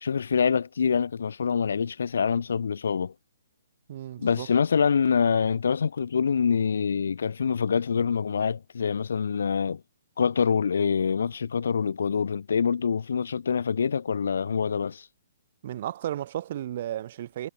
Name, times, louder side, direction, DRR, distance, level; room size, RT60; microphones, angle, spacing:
voice 1, 0.0-3.1 4.2-9.8 10.2-15.1, left 6 dB, 75° left, 1.0 m, -25 dB
voice 2, 3.9-4.5 15.6-17.5, right 12 dB, 35° right, 3.9 m, -34 dB
hypercardioid pair, 175°, 0 cm